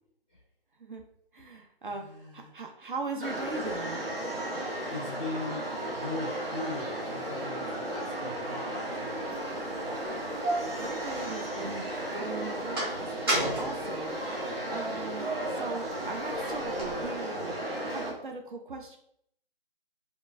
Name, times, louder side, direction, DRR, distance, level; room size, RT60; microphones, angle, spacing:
voice 1, 1.3-4.0 10.8-14.2 14.7-17.5 17.9-19.0, right 3 dB, 60° right, 3 dB, 0.5 m, -39 dB
voice 2, 1.9-2.5 4.9-9.3, left 2 dB, 10° left, -7 dB, 0.5 m, -39 dB
sound 1, 3.2-18.1, right 1 dB, 90° right, 0.9 m, -34 dB
sound 2, 9.2-9.3 10.0-11.8 12.2-14.8 15.3-17.1, right 1 dB, 25° right, 0.7 m, -34 dB
2.9 x 2.2 x 2.5 m, 0.68 s
figure-of-eight pair, 155°, 29 cm